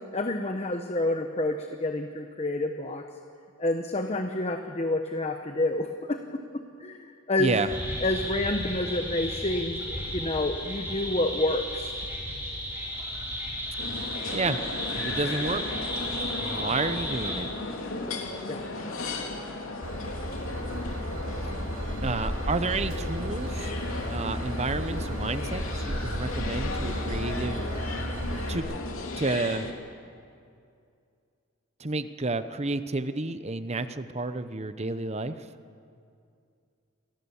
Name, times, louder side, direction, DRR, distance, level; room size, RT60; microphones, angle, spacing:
voice 1, 0.0-3.0 3.6-6.2 6.8-7.6 8.0-11.9 18.5-18.6, left 2 dB, 30° left, 5 dB, 1.0 m, -28 dB
sound 1, 7.7-17.3, equal, 10° right, 6.8 m, -34 dB
sound 2, 13.8-29.7, left 2 dB, 75° left, 3.0 m, -36 dB
voice 2, 14.9-15.6 16.4-17.5 22.0-23.7 24.1-27.6 28.5-28.8 29.2-29.7 31.8-35.4, right 3 dB, 30° right, 11 dB, 0.8 m, -30 dB
Train / Engine, 19.8-28.5, equal, 75° right, 2.8 m, -33 dB
28.0 x 19.5 x 7.2 m, 2.4 s
head